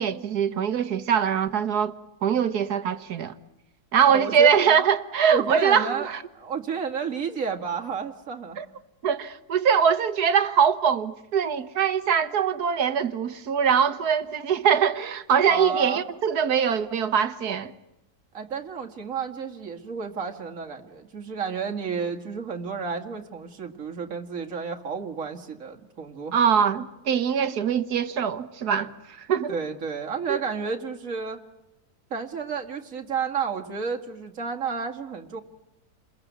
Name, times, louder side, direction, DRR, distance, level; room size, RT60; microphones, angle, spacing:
voice 1, 0.0-1.9 2.2-3.3 3.9-6.2 8.6-8.7 9.0-17.7 26.3-29.6 30.3-30.4, right 7 dB, 85° right, 1.8 m, -23 dB
voice 2, 4.1-4.8 5.3-8.6 15.4-16.0 18.3-26.4 29.5-31.4 32.1-35.4, right 5 dB, 60° right, 2.4 m, -31 dB
29.5 x 21.5 x 9.4 m
omnidirectional pair, 1.6 m